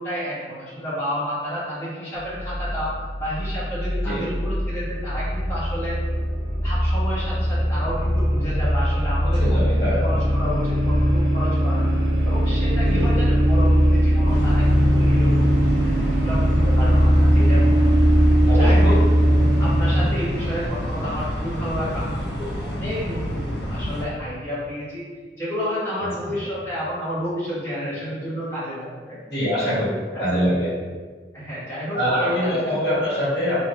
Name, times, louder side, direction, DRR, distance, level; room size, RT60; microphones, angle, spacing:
voice 1, 0.0-2.9 3.2-6.0 6.6-9.6 10.0-11.9 12.2-17.9 18.5-19.0 19.6-25.0 25.4-29.2 29.6-29.8 30.1-30.4 31.3-32.8, equal, 15° left, -12 dB, 1.2 m, -30 dB
sound 1, 2.2-20.0, equal, 35° right, 1.4 m, -20 dB
voice 2, 9.2-10.0 12.9-13.1 18.4-19.0 26.0-26.1 29.3-30.7 31.9-33.6, equal, 65° left, -8 dB, 1.4 m, -24 dB
sound 2, 14.3-24.0, equal, 85° left, 1.2 m, -29 dB
3.2 x 2.5 x 3.8 m, 1.5 s
head